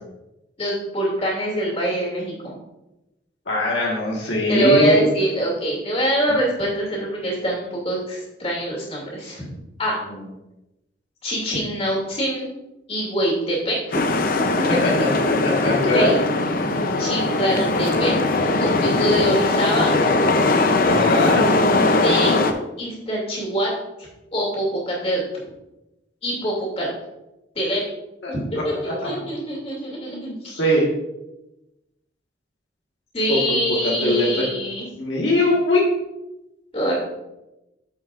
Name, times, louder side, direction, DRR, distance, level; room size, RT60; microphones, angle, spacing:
voice 1, 0.6-2.5 4.5-9.5 9.8-10.0 11.2-12.5 12.9-14.2 14.5-15.0 15.8-16.2 17.0-18.1 18.6-19.9 22.0-22.4 22.8-23.7 24.0-25.2 26.2-26.9 27.5-27.8 28.3-30.6 33.1-34.9 36.7-37.0, equal, 30° left, -3 dB, 2.6 m, -24 dB
voice 2, 3.4-5.0 10.1-10.2 14.8-15.1 15.4-16.1 20.8-21.5 28.2-28.3 28.8-29.1 30.1-30.8 33.3-34.3 34.9-35.8, left 1 dB, 75° left, -3 dB, 1.6 m, -21 dB
sound 1, 13.9-22.5, left 2 dB, 50° left, 0.6 m, -20 dB
Male singing, 17.0-19.4 19.7-21.9, equal, 15° left, 2.1 m, -34 dB
9.2 x 7.1 x 2.5 m, 0.95 s
head